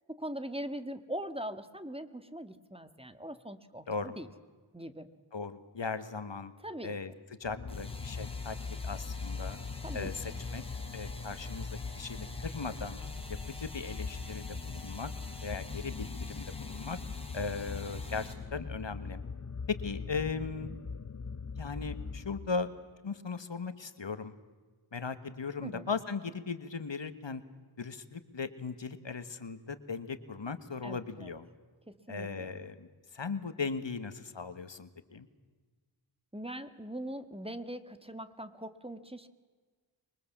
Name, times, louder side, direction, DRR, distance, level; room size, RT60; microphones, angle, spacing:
voice 1, 0.1-4.3 4.7-5.1 6.6-6.9 9.8-10.4 25.6-25.9 30.8-31.3 31.9-32.6 36.3-39.3, right 1 dB, 10° right, 10 dB, 1.7 m, -41 dB
voice 2, 5.3-6.5 6.8-7.1 7.4-8.6 8.8-9.6 9.9-10.6 10.9-13.0 13.5-15.1 15.4-17.0 17.3-19.2 19.7-20.7 21.6-22.7 23.0-24.3 24.9-27.4 27.8-31.5 32.1-35.3, left 4 dB, 65° left, 11 dB, 1.6 m, -38 dB
sound 1, 7.4-22.8, left 5 dB, 35° left, 0.8 m, -41 dB
sound 2, 7.7-18.3, left 1 dB, 10° left, 5.1 m, -48 dB
26.0 x 23.0 x 7.4 m, 1.4 s
wide cardioid pair, 60°, 48 cm